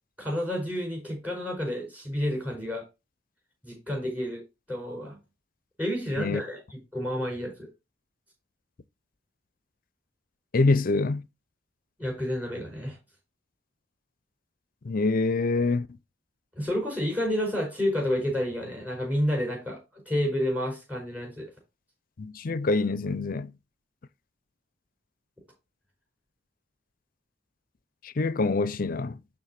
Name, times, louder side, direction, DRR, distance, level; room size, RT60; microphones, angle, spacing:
voice 1, 0.2-2.8 3.6-4.4 4.7-5.2 5.8-7.7 12.0-13.0 16.5-21.5, equal, 10° right, 4.7 m, -30 dB
voice 2, 10.5-11.2 14.8-15.9 22.2-23.5 28.0-29.2, left 3 dB, 45° left, 0.5 m, -25 dB
11.0 x 3.9 x 4.2 m
head